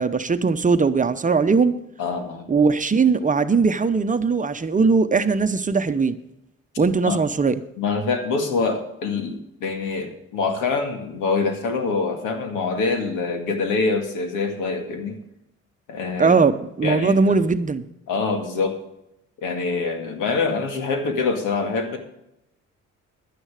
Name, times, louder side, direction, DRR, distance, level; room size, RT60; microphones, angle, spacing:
voice 1, 0.0-1.7 2.5-6.2 6.8-7.6 16.2-17.8, right 4 dB, 25° right, 10 dB, 0.8 m, -19 dB
voice 2, 2.0-2.5 7.1-7.2 7.8-15.2 15.9-16.4 16.8-17.2 18.1-18.8 19.4-22.0, left 4 dB, 90° left, 5 dB, 2.2 m, -25 dB
11.0 x 9.8 x 4.9 m, 0.84 s
cardioid pair, 90°, 30 cm